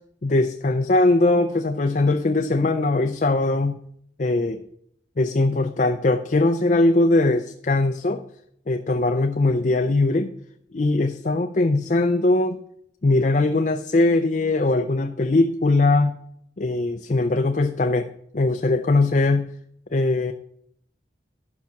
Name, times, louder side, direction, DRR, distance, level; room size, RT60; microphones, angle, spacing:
voice 1, 0.2-3.8 4.2-4.6 5.2-8.2 8.7-10.3 10.7-12.6 13.0-16.1 16.6-18.1 18.3-19.5 19.9-20.3, left 2 dB, 45° left, 7 dB, 0.5 m, -20 dB
12.0 x 5.7 x 5.9 m, 0.70 s
head